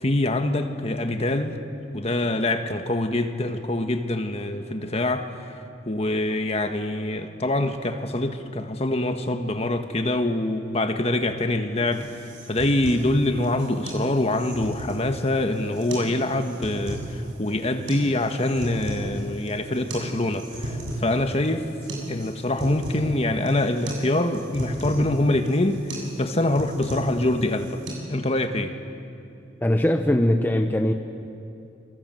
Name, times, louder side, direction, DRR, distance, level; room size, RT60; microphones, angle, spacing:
voice 1, 0.0-1.6 1.9-5.3 5.9-21.7 22.1-27.8 28.1-28.8, left 1 dB, 35° left, 1.5 m, -25 dB
sound 1, 11.9-27.9, right 1 dB, 80° right, 7.5 m, -35 dB
voice 2, 29.6-30.9, left 1 dB, 10° left, 0.9 m, -21 dB
28.0 x 25.0 x 7.8 m
head